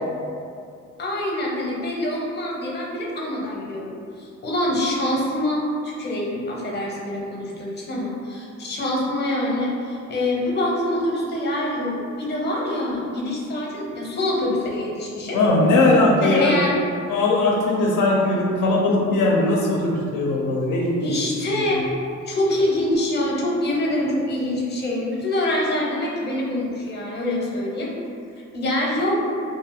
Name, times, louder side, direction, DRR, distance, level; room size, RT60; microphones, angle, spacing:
voice 1, 1.0-15.4 16.2-16.8 21.0-21.8 22.3-27.9 28.5-29.2, left 1 dB, 35° left, -3 dB, 0.7 m, -25 dB
voice 2, 15.3-16.7 17.1-21.1 21.5-21.6, left 2 dB, 80° left, -2 dB, 0.5 m, -19 dB
2.6 x 2.3 x 2.9 m, 2.3 s
cardioid pair, 90°, 30 cm